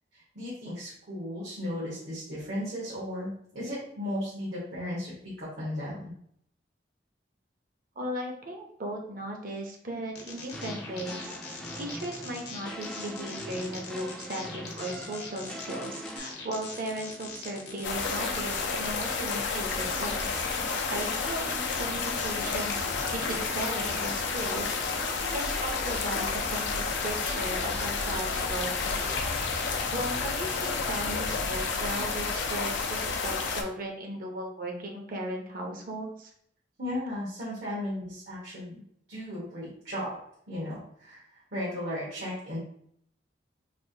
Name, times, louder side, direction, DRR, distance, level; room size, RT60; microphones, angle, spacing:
voice 1, 0.1-5.1 5.4-6.0 36.8-38.8 39.1-40.1 40.5-42.6, left 1 dB, 80° right, -8 dB, 1.3 m, -35 dB
voice 2, 8.0-11.3 11.8-20.3 20.9-22.8 23.1-24.8 25.3-29.1 29.9-36.3, right 1 dB, 50° right, 1 dB, 0.7 m, -36 dB
sound 1, 10.1-29.8, left 4 dB, 70° left, 0.9 m, -42 dB
sound 2, 10.5-16.2, equal, 5° left, 0.4 m, -42 dB
sound 3, 17.8-33.6, left 4 dB, 85° left, 0.5 m, -30 dB
3.3 x 2.5 x 2.7 m, 0.68 s
head